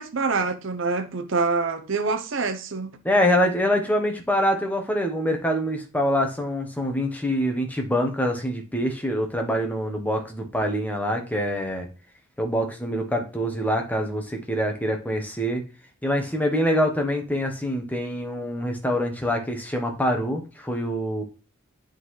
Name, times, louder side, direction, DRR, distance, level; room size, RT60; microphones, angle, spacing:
voice 1, 0.0-3.0, right 4 dB, 60° right, 0.7 m, -26 dB
voice 2, 3.0-11.9 12.4-15.6 16.0-21.2, equal, 10° left, 0.9 m, -25 dB
11.0 x 3.9 x 3.1 m
head